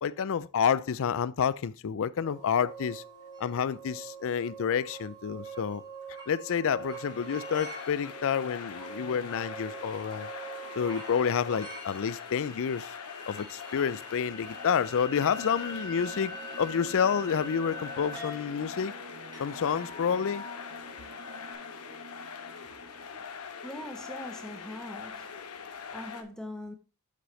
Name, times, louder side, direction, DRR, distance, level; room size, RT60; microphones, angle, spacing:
voice 1, 0.0-3.0 3.4-5.8 6.3-10.3 10.8-12.9 13.3-18.9 19.4-20.4, left 7 dB, 65° left, 0.4 m, -29 dB
sound 1, 2.2-21.5, right 2 dB, 20° right, 2.2 m, -44 dB
sound 2, 6.7-26.2, left 6 dB, 85° left, 1.0 m, -43 dB
sound 3, 14.1-23.3, right 4 dB, 40° right, 0.4 m, -52 dB
voice 2, 23.2-26.7, left 1 dB, 5° left, 0.7 m, -43 dB
7.7 x 6.3 x 3.2 m
head